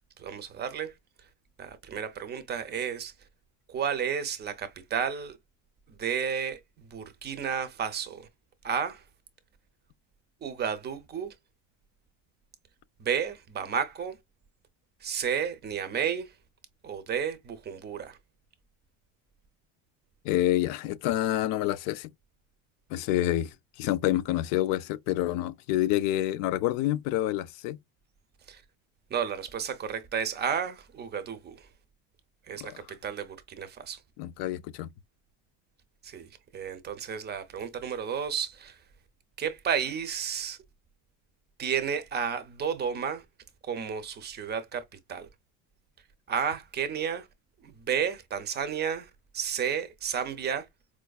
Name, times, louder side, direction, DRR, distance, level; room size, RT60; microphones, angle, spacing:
voice 1, 0.2-0.9 1.6-3.1 3.7-5.4 5.9-8.3 8.6-9.0 10.4-11.3 13.0-14.2 15.0-16.3 16.8-18.2 28.5-28.6 29.1-31.7 32.5-34.0 36.0-38.8 39.4-40.6 41.6-43.3 43.6-45.3 46.3-47.3 47.6-50.7, right 7 dB, 25° right, 0.6 m, -32 dB
voice 2, 20.2-22.1 22.9-27.8 32.6-32.7 34.2-34.9, left 14 dB, 60° left, 0.5 m, -28 dB
4.6 x 2.5 x 2.3 m
cardioid pair, 140°, 38 cm